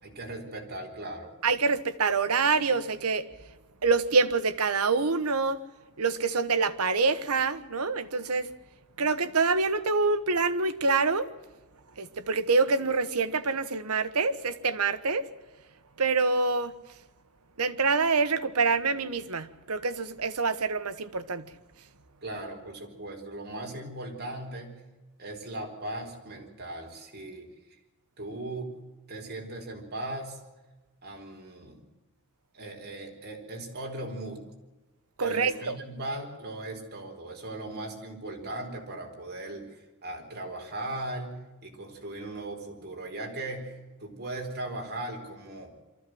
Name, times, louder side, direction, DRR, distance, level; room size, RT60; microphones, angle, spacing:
voice 1, 0.0-1.3 22.2-24.8 25.2-27.5 28.2-28.7 29.1-30.4 31.0-31.8 32.5-34.4 35.2-45.7, right 1 dB, 50° right, 2 dB, 4.4 m, -38 dB
voice 2, 1.4-3.2 3.8-5.6 6.0-8.5 9.0-11.3 12.0-15.2 16.0-16.7 17.6-21.4 35.2-35.8, right 4 dB, 85° right, 11 dB, 1.3 m, -26 dB
24.0 x 14.5 x 7.9 m, 1.1 s
head